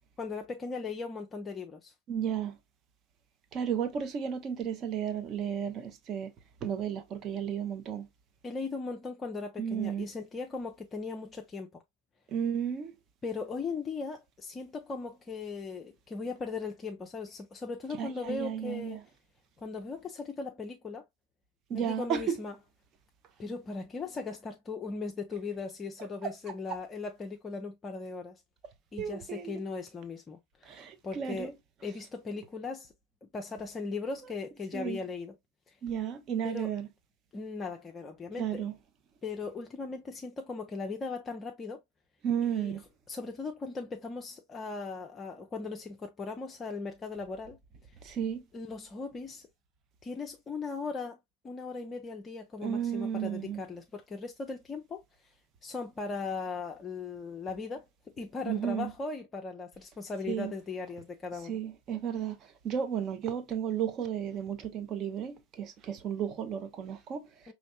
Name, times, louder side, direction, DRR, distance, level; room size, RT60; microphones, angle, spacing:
voice 1, 0.2-1.9 8.4-11.8 13.2-19.0 19.6-21.0 21.7-22.5 23.4-28.4 28.9-31.5 31.8-32.9 33.2-35.3 35.7-35.8 36.4-36.7 37.3-38.7 39.2-41.8 42.5-42.7 43.1-47.6 48.5-49.5 50.0-51.2 51.4-55.3 55.6-57.9 58.2-61.6 67.5-67.6, left 4 dB, 20° left, 0.5 m, -38 dB
voice 2, 2.1-2.5 3.5-6.3 6.6-8.1 9.6-10.1 12.3-12.9 18.0-19.0 21.7-22.4 26.2-26.5 29.0-29.6 30.7-31.6 34.2-34.3 34.7-35.0 35.8-36.9 38.4-38.7 42.2-42.8 48.0-48.4 52.6-53.6 58.5-58.9 60.3-60.5 61.4-62.3 62.6-67.3, right 8 dB, 30° right, 0.7 m, -33 dB
5.2 x 3.1 x 2.3 m
figure-of-eight pair, 90°, 0 cm